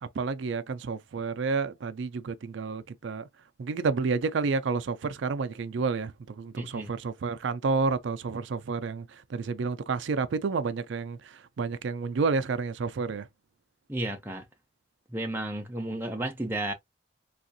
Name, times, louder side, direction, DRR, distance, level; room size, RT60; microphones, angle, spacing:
voice 1, 0.0-3.3 3.6-13.3, right 4 dB, 70° right, 0.4 m, -30 dB
voice 2, 6.6-6.9 13.9-14.4 15.1-16.7, right 1 dB, 10° right, 0.5 m, -32 dB
3.5 x 2.4 x 2.6 m
head